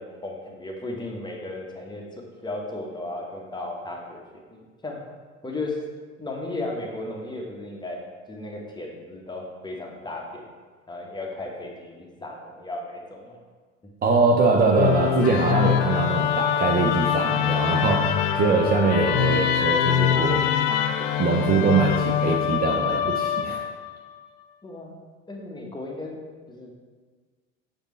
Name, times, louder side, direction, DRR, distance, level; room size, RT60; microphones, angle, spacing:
voice 1, 0.0-4.2 4.5-5.0 5.4-5.8 6.2-8.0 8.3-10.4 10.9-13.4 24.6-24.9 25.3-26.2 26.5-26.7, left 2 dB, 10° left, 0 dB, 1.0 m, -35 dB
voice 2, 14.0-20.5 21.2-23.6, right 4 dB, 25° right, 0 dB, 0.6 m, -22 dB
Musical instrument, 14.7-23.9, left 9 dB, 45° left, 0.4 m, -24 dB
6.8 x 5.0 x 3.1 m, 1.4 s
figure-of-eight pair, 75°, 38 cm